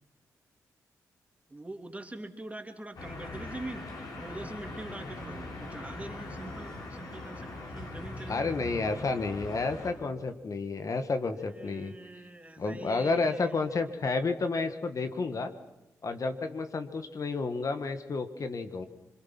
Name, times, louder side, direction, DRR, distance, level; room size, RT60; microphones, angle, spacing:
voice 1, 1.5-3.9 4.2-8.7 11.5-13.6, right 2 dB, 20° right, 5 dB, 3.0 m, -43 dB
sound 1, 2.9-9.9, left 2 dB, 70° left, 6.9 m, -41 dB
voice 2, 8.3-11.9 12.6-15.5 16.0-18.8, left 3 dB, 55° left, 8 dB, 1.8 m, -31 dB
26.5 x 22.5 x 6.1 m, 0.94 s
supercardioid pair, 50°, 7 cm